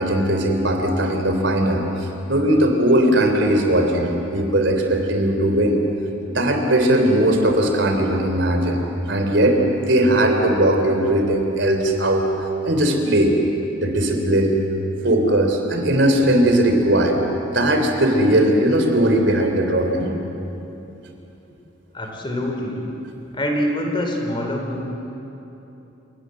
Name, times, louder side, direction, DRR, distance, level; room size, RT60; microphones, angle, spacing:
voice 1, 0.0-5.8 6.3-9.6 9.9-12.3 12.7-13.4 13.8-14.6 15.0-17.2 17.5-20.1, right 1 dB, 65° right, 4 dB, 3.5 m, -19 dB
voice 2, 21.9-22.9 23.3-24.8, left 1 dB, 25° left, 1 dB, 3.6 m, -25 dB
28.5 x 19.0 x 7.9 m, 3.0 s
head